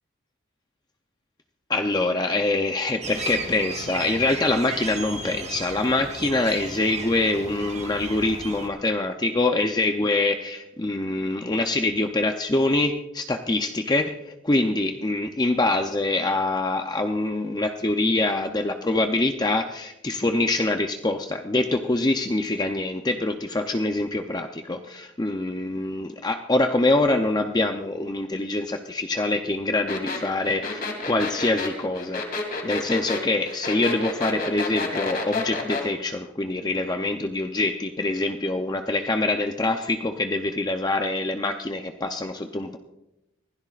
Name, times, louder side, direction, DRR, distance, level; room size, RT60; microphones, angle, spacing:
voice 1, 1.7-32.2 32.6-42.8, left 2 dB, 20° left, 5 dB, 0.6 m, -25 dB
sound 1, 3.0-8.7, right 4 dB, 35° right, 1.4 m, -35 dB
sound 2, 29.9-35.9, left 3 dB, 45° left, 2.3 m, -29 dB
25.0 x 16.5 x 2.5 m, 0.89 s
head